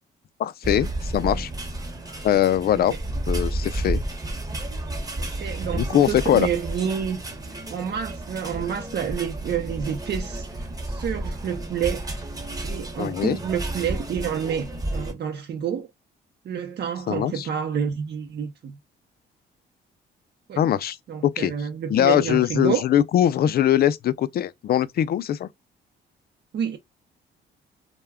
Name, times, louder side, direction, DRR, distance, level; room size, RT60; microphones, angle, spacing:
voice 1, 0.4-1.5 2.2-2.9 3.3-4.0 5.7-6.5 13.0-13.4 17.1-17.5 20.6-21.0 21.2-21.5 21.9-25.5, left 11 dB, 50° left, 0.4 m, -21 dB
sound 1, 0.6-15.1, right 1 dB, 20° right, 0.8 m, -31 dB
voice 2, 5.2-7.2 7.7-10.4 10.8-12.1 12.6-15.9 16.4-18.8 20.5-20.6 21.1-22.8 26.5-26.8, right 8 dB, 55° right, 0.6 m, -29 dB
2.2 x 2.2 x 3.4 m
cardioid pair, 90°, 20 cm